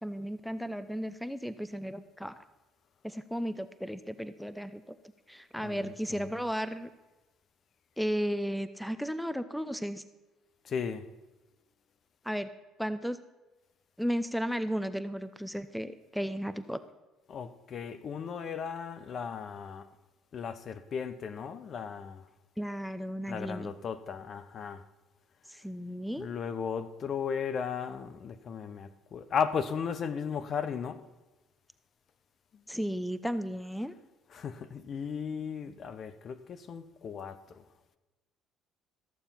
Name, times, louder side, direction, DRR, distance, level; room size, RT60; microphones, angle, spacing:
voice 1, 0.0-2.4 3.0-5.0 5.3-6.9 8.0-10.0 12.2-12.5 12.8-13.2 14.0-16.8 22.6-23.7 25.5-26.3 32.7-33.9, equal, ahead, 0.7 m, -34 dB
voice 2, 5.6-6.4 10.6-11.0 17.3-19.9 20.3-22.2 23.3-24.8 26.2-31.0 32.5-32.6 34.3-37.6, left 6 dB, 50° left, 0.8 m, -36 dB
14.0 x 7.0 x 5.7 m
supercardioid pair, 80°, 0 cm